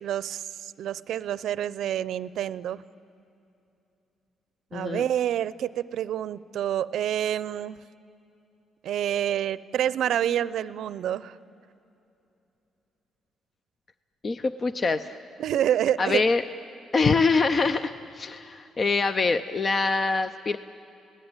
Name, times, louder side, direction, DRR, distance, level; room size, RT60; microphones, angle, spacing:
voice 1, 0.0-2.8 4.7-7.8 8.8-11.4 15.4-16.2, right 10 dB, 75° right, 18 dB, 0.6 m, -28 dB
voice 2, 4.7-5.0 14.2-15.2 16.0-16.4 16.9-20.6, left 4 dB, 40° left, 11 dB, 0.7 m, -24 dB
29.5 x 18.5 x 9.0 m, 2.8 s
cardioid pair, 90°, 0 cm